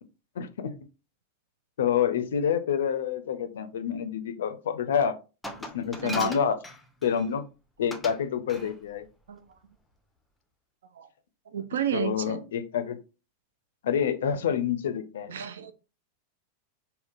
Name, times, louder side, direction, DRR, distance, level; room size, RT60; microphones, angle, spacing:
voice 1, 0.4-0.8 1.8-5.2 5.7-6.6 7.0-7.5 7.8-9.1 11.9-13.0 13.8-15.3, left 8 dB, 60° left, 0.4 m, -27 dB
Glass, 5.4-7.3 7.9-8.2 8.5-8.7, equal, 5° left, 0.5 m, -38 dB
voice 2, 6.0-6.4 9.3-9.4 11.0-11.1 11.5-12.4 15.3-15.7, right 9 dB, 65° right, 0.3 m, -31 dB
3.6 x 2.1 x 2.4 m
figure-of-eight pair, 90°, 0 cm